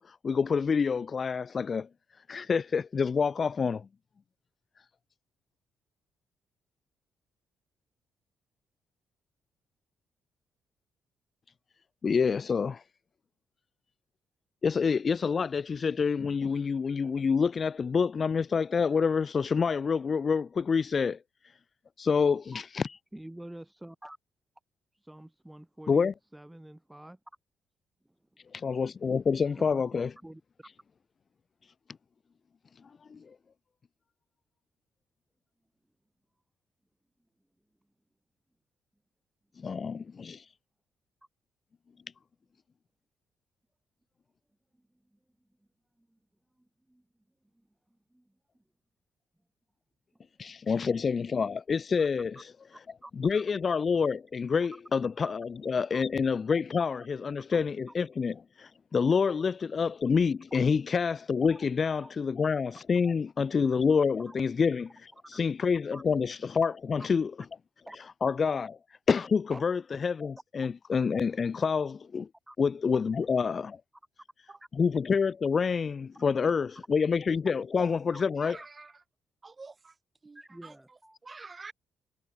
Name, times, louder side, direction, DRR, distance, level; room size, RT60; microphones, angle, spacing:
voice 1, 0.0-1.9 2.3-3.9 12.0-12.8 14.6-21.2 22.0-23.0 25.9-26.1 28.5-30.1 33.1-33.3 39.6-40.5 50.4-52.5 53.2-67.3 68.2-68.7 69.1-72.3 72.6-73.8 74.7-78.6, left 5 dB, 40° left, 0.4 m, -27 dB
voice 2, 23.1-24.2 25.0-27.2 29.6-29.8 30.2-30.7 46.1-46.2 46.9-47.0 48.1-48.3 52.0-52.1 53.0-53.4 55.9-56.0 57.5-57.6 60.5-60.6 61.5-61.6 62.0-62.1 64.3-64.4 65.3-65.4 65.9-66.0 67.9-68.0 69.5-69.6 72.5-72.6 74.5-74.6 78.1-78.3 78.6-78.7 80.3-81.2, right 1 dB, 5° right, 3.6 m, -47 dB
voice 3, 78.3-79.0 79.4-80.0 80.2-81.7, right 4 dB, 30° right, 4.6 m, -47 dB
cardioid pair, 90°, 0 cm